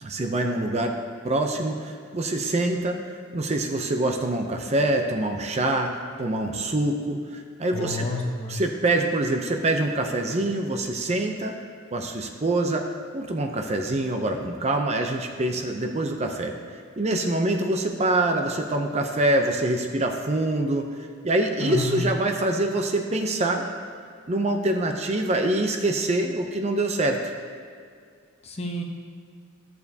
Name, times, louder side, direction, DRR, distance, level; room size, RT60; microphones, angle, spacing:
voice 1, 0.0-1.0 1.2-3.0 3.3-8.1 8.5-11.6 11.9-12.9 13.1-16.6 17.0-20.9 21.2-23.7 24.3-27.2, right 2 dB, 30° right, 4 dB, 0.5 m, -25 dB
voice 2, 7.7-8.6 21.6-22.1 28.4-28.8, left 2 dB, 30° left, 1 dB, 0.8 m, -29 dB
14.0 x 6.8 x 2.8 m, 2.1 s
head